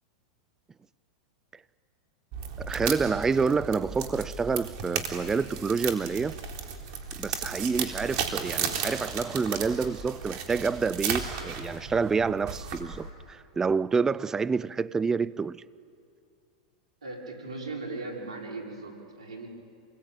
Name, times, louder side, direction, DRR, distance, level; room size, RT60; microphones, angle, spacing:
sound 1, 2.3-13.1, right 7 dB, 55° right, 3.7 m, -35 dB
voice 1, 2.6-6.4 7.2-15.6, right 5 dB, 15° right, 0.5 m, -28 dB
voice 2, 17.0-19.5, right 3 dB, 85° right, 5.5 m, -38 dB
28.0 x 21.0 x 9.0 m
hypercardioid pair, 110°, 3 cm